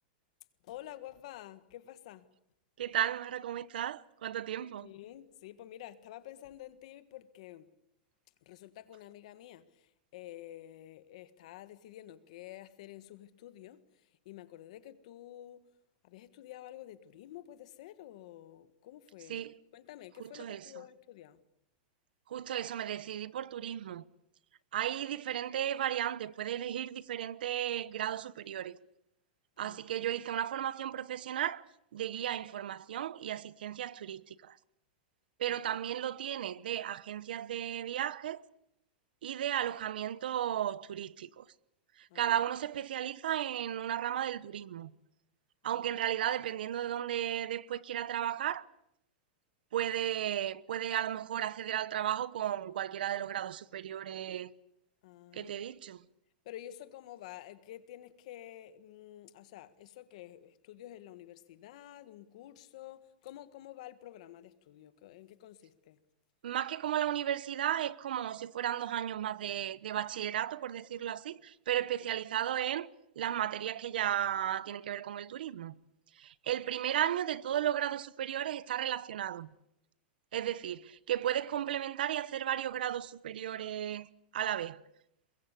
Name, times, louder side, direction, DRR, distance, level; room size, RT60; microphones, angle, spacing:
voice 1, 0.6-2.3 4.6-7.7 8.4-15.6 16.0-19.5 19.7-21.4 29.6-29.8 35.5-35.8 42.1-42.4 45.7-45.8 55.0-55.5 56.4-66.0, left 13 dB, 45° left, 1.6 m, -50 dB
voice 2, 2.8-4.9 19.3-19.5 20.3-20.6 22.3-24.0 24.7-28.8 29.6-31.6 31.9-34.6 35.4-38.4 39.2-41.4 42.0-44.9 45.6-48.6 49.7-54.5 55.3-56.0 66.4-72.9 73.1-75.7 76.2-79.5 80.3-84.1 84.3-84.8, right 11 dB, 80° right, 1.0 m, -34 dB
24.0 x 22.0 x 8.3 m
supercardioid pair, 180°, 5 cm